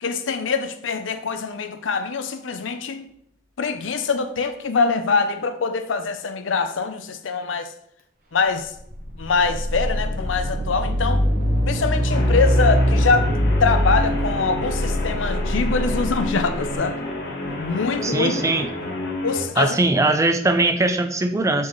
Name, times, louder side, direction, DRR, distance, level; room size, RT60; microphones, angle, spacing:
voice 1, 0.0-3.1 3.6-7.7 8.3-8.7 9.2-11.2 11.7-13.3 13.6-17.0 17.6-18.3 19.2-19.8, left 4 dB, 90° left, 0.6 m, -24 dB
sound 1, 8.7-16.8, equal, 50° right, 1.2 m, -22 dB
Guitar, 12.1-19.5, left 2 dB, 60° left, 1.4 m, -30 dB
voice 2, 18.0-18.7 19.6-21.7, right 2 dB, 15° right, 0.4 m, -20 dB
7.1 x 4.5 x 3.1 m
head